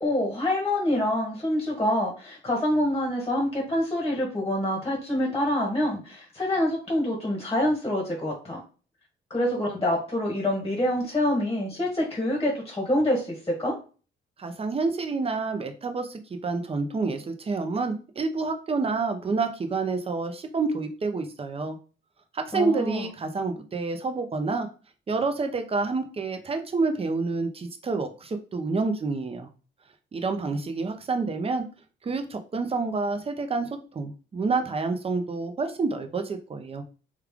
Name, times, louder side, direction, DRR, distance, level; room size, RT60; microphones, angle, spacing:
voice 1, 0.0-8.6 9.3-13.8 22.5-23.1, left 1 dB, 15° left, -1 dB, 1.2 m, -26 dB
voice 2, 14.4-21.8 22.3-24.7 25.1-29.5 30.1-31.6 32.0-36.8, right 3 dB, 30° right, 6 dB, 0.6 m, -28 dB
3.2 x 2.4 x 3.5 m, 0.36 s
cardioid pair, 90°, 20 cm